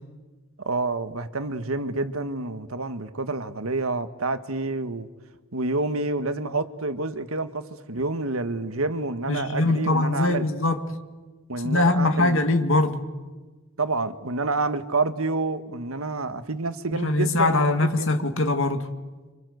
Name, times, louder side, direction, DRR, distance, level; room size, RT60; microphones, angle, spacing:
voice 1, 0.6-5.1 5.5-10.4 11.5-12.4 13.8-18.1, right 3 dB, 80° right, 1.6 m, -28 dB
voice 2, 9.3-10.9 11.6-13.1 16.9-18.9, left 2 dB, 65° left, 2.0 m, -22 dB
28.0 x 26.5 x 8.0 m
head